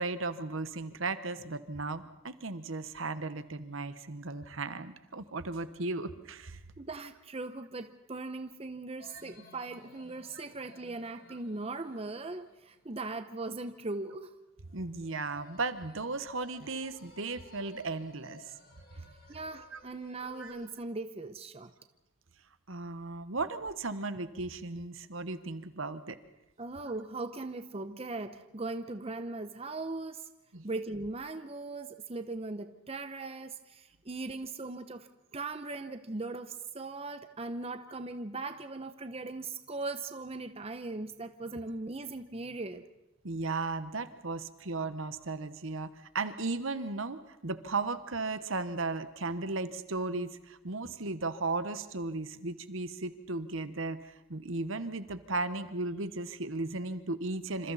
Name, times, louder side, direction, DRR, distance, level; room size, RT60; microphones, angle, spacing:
voice 1, 0.0-6.6 11.3-11.4 14.7-18.5 19.0-19.1 19.7-19.8 20.4-20.5 22.7-26.2 30.5-30.7 43.2-57.7, right 3 dB, 70° right, 1.2 m, -36 dB
voice 2, 6.8-14.4 18.9-21.7 26.6-30.3 30.6-42.9, right 3 dB, 30° right, 0.8 m, -39 dB
sound 1, 9.0-13.4 14.7-20.7, left 2 dB, 45° left, 3.4 m, -57 dB
27.5 x 26.5 x 4.2 m
head